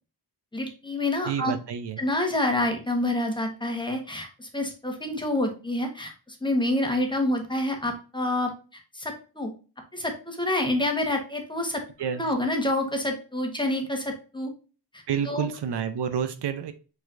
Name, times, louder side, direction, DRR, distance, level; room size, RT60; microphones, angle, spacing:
voice 1, 0.5-1.5 2.0-8.5 8.9-9.5 9.9-11.8 12.1-14.5 14.9-15.5, left 1 dB, 10° left, 3 dB, 1.2 m, -27 dB
voice 2, 1.3-2.0 12.0-12.2 15.1-16.7, right 8 dB, 75° right, 10 dB, 0.7 m, -29 dB
4.7 x 4.2 x 2.5 m, 0.35 s
wide cardioid pair, 120°, 41 cm